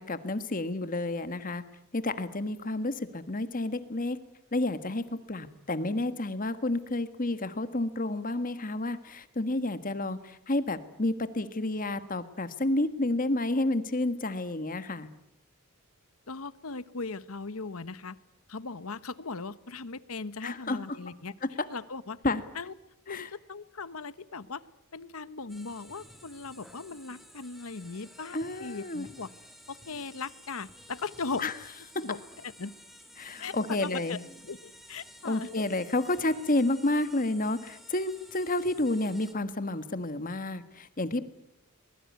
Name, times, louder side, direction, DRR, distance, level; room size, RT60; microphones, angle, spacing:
voice 1, 0.0-1.6 1.9-4.2 4.5-15.1 20.4-20.8 21.6-21.7 22.2-22.4 23.1-23.3 28.3-29.0 31.4-31.5 31.9-32.0 33.2-34.2 35.2-41.2, left 2 dB, 40° left, 11 dB, 1.5 m, -30 dB
voice 2, 16.3-18.2 18.5-22.2 22.5-22.7 23.1-24.6 24.9-29.3 29.7-31.5 32.0-32.8 33.4-34.2 34.4-35.5, left 4 dB, 75° left, 16 dB, 1.1 m, -38 dB
sound 1, 25.5-39.3, equal, ahead, 2.6 m, -53 dB
23.5 x 20.5 x 9.5 m, 0.79 s
head